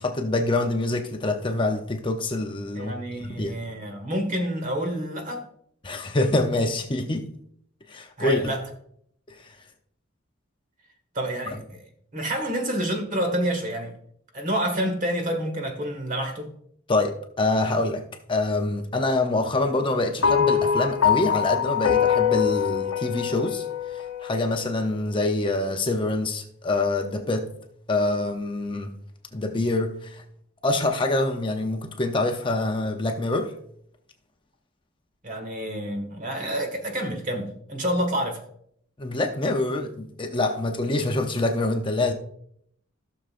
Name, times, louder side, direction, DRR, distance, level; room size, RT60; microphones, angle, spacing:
voice 1, 0.0-2.9 3.2-3.6 5.8-7.3 7.9-8.4 9.3-9.5 16.9-27.5 27.9-28.9 29.3-30.2 30.6-33.5 39.0-42.1, left 2 dB, 25° left, 0.7 m, -25 dB
voice 2, 2.7-5.5 8.2-8.6 11.1-11.8 12.1-13.9 14.3-16.5 35.2-38.4, equal, 40° right, 1.6 m, -28 dB
sound 1, 20.2-24.7, left 8 dB, 90° left, 0.6 m, -23 dB
16.0 x 6.6 x 2.5 m
head